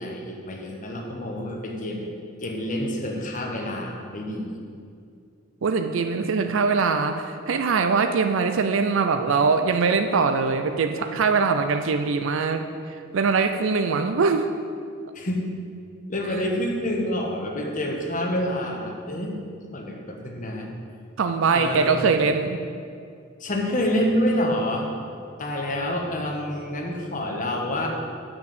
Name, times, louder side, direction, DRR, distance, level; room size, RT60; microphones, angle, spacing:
voice 1, 0.0-2.1 2.4-4.5 15.1-15.4 16.1-19.3 19.7-20.7 21.5-22.1 23.4-24.9 25.4-27.9, left 1 dB, 40° left, 0 dB, 1.3 m, -27 dB
voice 2, 5.6-14.5 21.2-22.6, right 5 dB, 70° right, 7 dB, 0.5 m, -22 dB
7.4 x 6.0 x 7.6 m, 2.4 s
head